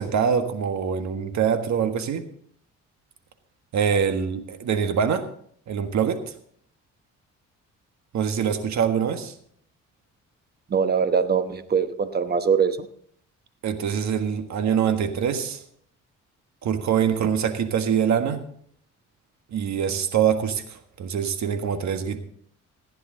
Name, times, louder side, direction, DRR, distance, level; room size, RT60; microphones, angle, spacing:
voice 1, 0.0-2.2 3.7-5.2 5.7-6.3 8.1-9.3 13.6-15.6 16.6-18.4 19.5-22.2, right 7 dB, 65° right, 8 dB, 1.6 m, -24 dB
voice 2, 10.7-12.8, right 6 dB, 30° right, 10 dB, 1.1 m, -22 dB
15.5 x 10.0 x 3.9 m, 0.63 s
cardioid pair, 90°, 30 cm